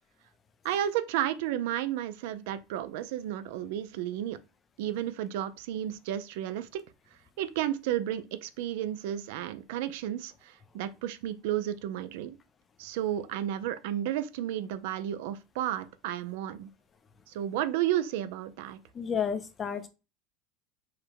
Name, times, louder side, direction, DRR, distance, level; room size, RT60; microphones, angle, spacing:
voice 1, 0.6-4.4 4.8-6.8 7.4-12.4 12.8-16.7 17.3-18.8, right 11 dB, 70° right, 0.5 m, -32 dB
voice 2, 18.9-19.9, left 7 dB, 20° left, 0.5 m, -31 dB
4.8 x 2.2 x 4.6 m
supercardioid pair, 160°, 0 cm